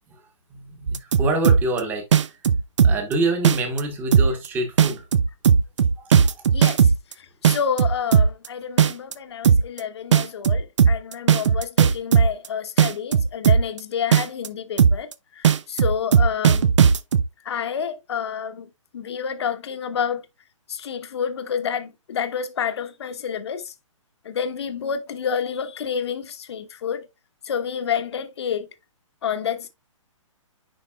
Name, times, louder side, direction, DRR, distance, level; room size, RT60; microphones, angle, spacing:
voice 1, 0.5-2.0 2.8-5.0 6.0-6.2, right 2 dB, 10° right, 1.2 m, -26 dB
sound 1, 0.9-1.8 2.1-3.1 3.4-3.8 4.1-4.5 4.8-7.1 7.4-8.5 8.8-9.1 9.4-9.8 10.1-12.5 12.8-13.8 14.1-14.5 14.8-15.1 15.4-17.2, right 7 dB, 60° right, 0.7 m, -16 dB
voice 2, 7.4-15.1 15.4-16.7 17.4-18.7 18.9-20.2 20.7-23.7 24.2-27.0 27.4-28.7 29.2-29.7, left 7 dB, 50° left, 1.1 m, -29 dB
10.0 x 4.1 x 2.3 m
hypercardioid pair, 160°, 17 cm